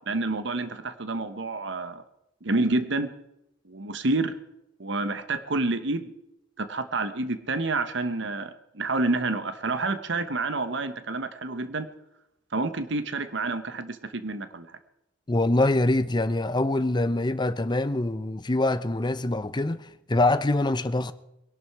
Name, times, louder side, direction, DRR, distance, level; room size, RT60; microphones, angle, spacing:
voice 1, 0.1-2.0 2.4-3.1 3.6-4.3 4.8-6.1 6.6-11.9 12.5-14.8, right 3 dB, 65° right, 1.1 m, -28 dB
voice 2, 15.3-21.1, left 2 dB, 25° left, 0.7 m, -24 dB
22.5 x 11.5 x 4.8 m
head